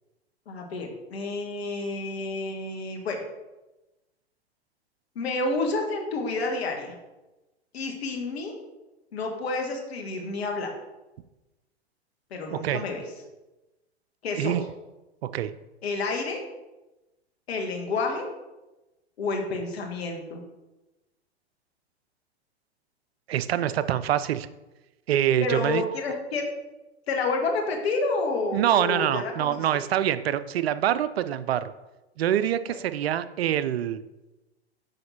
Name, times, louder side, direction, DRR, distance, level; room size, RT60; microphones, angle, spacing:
voice 1, 0.5-3.2 5.1-6.9 7.7-8.5 9.1-10.7 12.3-13.0 14.2-14.6 15.8-16.4 17.5-18.2 19.2-20.4 25.4-26.5 27.1-29.8 32.6-32.8, left 3 dB, 65° left, 2 dB, 1.6 m, -29 dB
voice 2, 23.3-24.5 25.1-25.8 28.5-31.6 32.2-34.0, right 11 dB, 65° right, 13 dB, 0.5 m, -25 dB
6.4 x 4.9 x 4.3 m, 1.0 s
figure-of-eight pair, 100°, 33 cm